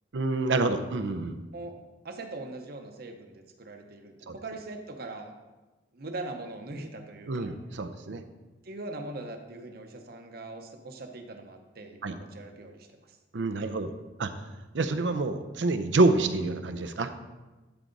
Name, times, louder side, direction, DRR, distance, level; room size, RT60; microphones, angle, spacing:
voice 1, 0.1-1.4 4.3-4.4 7.3-8.2 12.0-12.2 13.3-13.9 14.2-14.4 14.7-17.1, right 2 dB, 90° right, 8 dB, 0.6 m, -27 dB
voice 2, 2.0-5.3 5.9-7.5 8.6-13.2 13.6-13.7, right 2 dB, 60° right, 5 dB, 0.9 m, -41 dB
11.5 x 4.8 x 4.0 m, 1.2 s
head